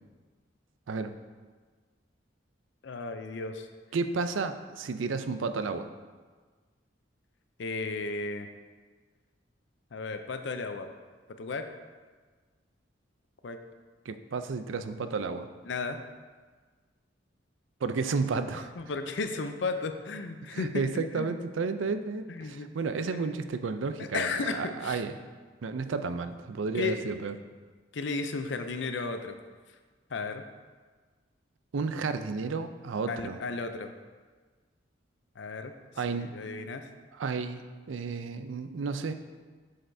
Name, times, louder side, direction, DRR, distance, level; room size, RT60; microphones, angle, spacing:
voice 1, 2.8-3.7 7.6-8.5 9.9-10.9 11.4-11.7 13.4-13.6 15.7-16.0 18.8-20.9 21.2-21.3 22.3-22.7 24.0-25.0 26.7-27.0 27.9-29.4 30.1-30.4 33.1-33.9 35.4-35.7 36.1-36.8, left 4 dB, 70° left, 7 dB, 0.5 m, -34 dB
voice 2, 3.9-5.9 14.1-15.5 17.8-18.7 20.5-25.2 25.6-27.3 31.7-33.4 36.0-36.4 37.1-39.1, right 4 dB, 85° right, 10 dB, 0.4 m, -32 dB
7.6 x 6.5 x 2.7 m, 1.4 s
head